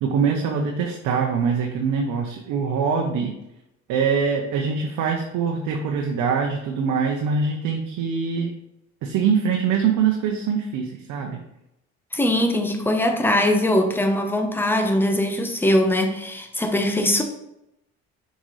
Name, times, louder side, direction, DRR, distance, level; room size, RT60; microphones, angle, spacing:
voice 1, 0.0-3.3 3.9-8.5 9.0-11.4, right 6 dB, 75° right, 1 dB, 0.9 m, -23 dB
voice 2, 12.1-17.2, left 1 dB, 5° left, 5 dB, 0.9 m, -21 dB
6.3 x 5.1 x 3.2 m, 0.86 s
supercardioid pair, 90°, 31 cm